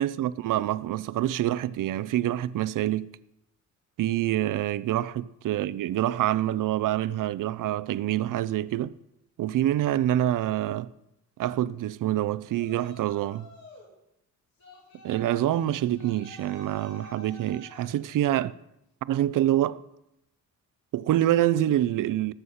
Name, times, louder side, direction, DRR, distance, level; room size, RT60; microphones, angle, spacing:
voice 1, 0.0-3.1 4.0-8.9 9.4-10.9 11.4-13.5 15.0-18.6 19.0-19.8 20.9-22.3, right 13 dB, 80° right, 0.6 m, -26 dB
Yell, 12.5-13.9 14.6-18.0, equal, 65° left, 6.1 m, -48 dB
18.5 x 8.1 x 5.6 m
wide cardioid pair, 135°, 31 cm